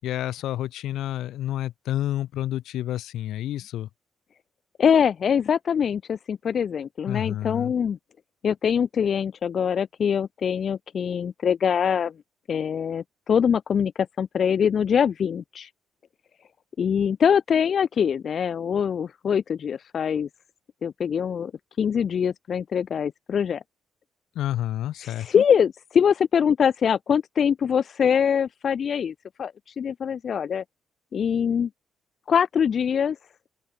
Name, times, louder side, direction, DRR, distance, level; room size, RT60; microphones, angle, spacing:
voice 1, 0.0-3.9 7.1-7.7 24.4-25.4, left 13 dB, 80° left, 5.5 m, -29 dB
voice 2, 4.8-8.0 8.4-12.1 12.5-13.9 14.2-15.7 16.8-20.3 20.8-21.5 21.8-23.6 25.0-30.6 31.1-31.7 32.3-33.2, left 7 dB, 55° left, 2.1 m, -23 dB
open air
cardioid pair, 90°, 0 cm